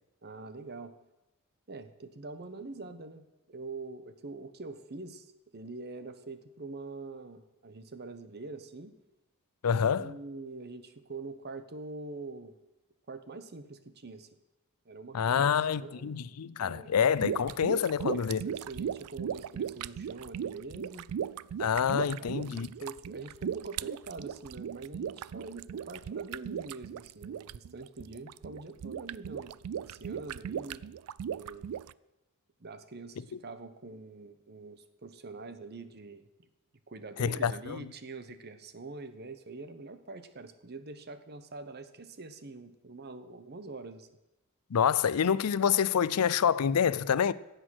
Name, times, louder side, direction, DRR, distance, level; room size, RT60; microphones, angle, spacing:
voice 1, 0.2-0.9 1.7-8.9 9.7-12.6 13.1-14.3 14.8-16.2 16.6-16.9 17.9-21.1 22.2-30.9 31.3-31.7 32.6-36.2 36.9-44.1, right 3 dB, 45° right, 1.0 m, -44 dB
voice 2, 9.6-10.1 15.1-18.4 21.6-22.7 37.2-37.9 44.7-47.3, left 7 dB, 85° left, 0.5 m, -27 dB
sound 1, 17.2-31.9, right 8 dB, 80° right, 0.3 m, -37 dB
16.0 x 8.0 x 6.3 m
head